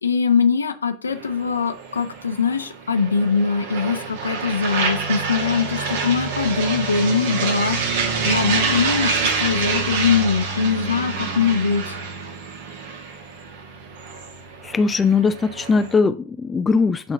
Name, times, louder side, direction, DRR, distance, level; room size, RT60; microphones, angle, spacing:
voice 1, 0.0-12.0, left 5 dB, 75° left, 0.7 m, -22 dB
sound 1, 1.1-15.9, right 4 dB, 55° right, 1.1 m, -27 dB
voice 2, 14.6-17.1, left 4 dB, 15° left, 0.3 m, -20 dB
8.1 x 3.8 x 3.6 m
figure-of-eight pair, 90°, 0 cm